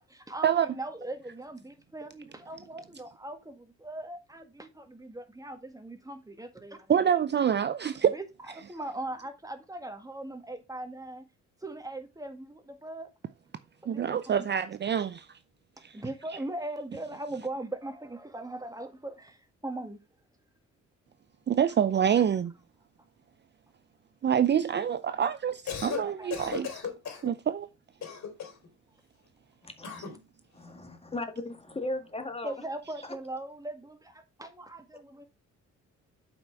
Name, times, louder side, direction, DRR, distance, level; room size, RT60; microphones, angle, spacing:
voice 1, 0.1-7.0 8.0-8.2 8.6-11.3 11.6-13.1 13.9-14.5 15.9-20.0 26.0-26.5 32.4-35.2, right 2 dB, 10° right, 1.7 m, -40 dB
voice 2, 6.9-8.2 13.9-15.4 15.8-16.0 21.5-22.5 24.2-26.7 27.2-27.7, right 8 dB, 35° right, 0.5 m, -26 dB
Cough, 25.5-26.0 26.3-27.3 28.0-28.7 29.8-30.2, left 7 dB, 65° left, 3.1 m, -36 dB
voice 3, 29.6-30.1 30.5-32.5 33.0-33.2, left 2 dB, 20° left, 1.9 m, -37 dB
7.8 x 5.3 x 4.6 m
cardioid pair, 90°, 30 cm